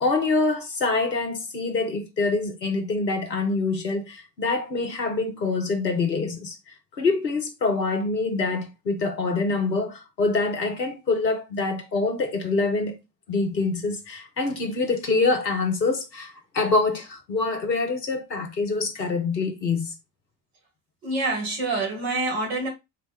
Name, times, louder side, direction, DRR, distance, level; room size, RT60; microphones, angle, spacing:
voice 1, 0.0-6.6 6.9-13.0 13.3-19.9, left 3 dB, 90° left, 0.7 m, -25 dB
voice 2, 21.0-22.7, right 2 dB, 60° right, 1.7 m, -26 dB
4.0 x 2.0 x 3.2 m
figure-of-eight pair, 50°, 49 cm